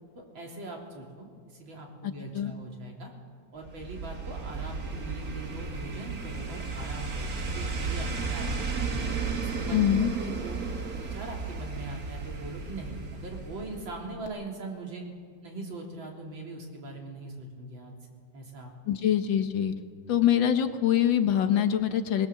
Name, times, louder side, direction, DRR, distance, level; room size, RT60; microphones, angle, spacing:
voice 1, 0.3-3.1 3.5-9.1 9.4-10.6 10.9-15.0 15.4-17.9 18.3-19.0, right 2 dB, 80° right, 0 dB, 4.2 m, -41 dB
voice 2, 2.0-2.5 9.7-10.1 18.9-19.7 20.1-22.3, left 10 dB, 75° left, 8 dB, 1.9 m, -24 dB
sound 1, 3.6-14.0 14.3-14.4, right 4 dB, 50° right, 2.3 m, -34 dB
21.0 x 20.5 x 7.2 m, 2.1 s
omnidirectional pair, 2.1 m